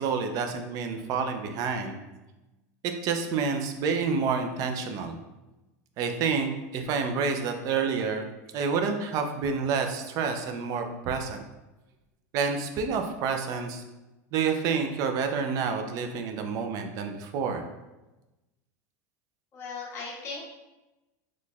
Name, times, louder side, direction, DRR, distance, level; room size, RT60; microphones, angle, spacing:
voice 1, 0.0-2.0 2.8-5.2 6.0-8.2 8.5-11.4 12.3-13.8 14.3-17.6, right 5 dB, 40° right, 5 dB, 0.4 m, -28 dB
voice 2, 19.5-20.5, left 4 dB, 30° left, -7 dB, 1.3 m, -37 dB
4.0 x 3.1 x 2.3 m, 1.0 s
supercardioid pair, 145°, 9 cm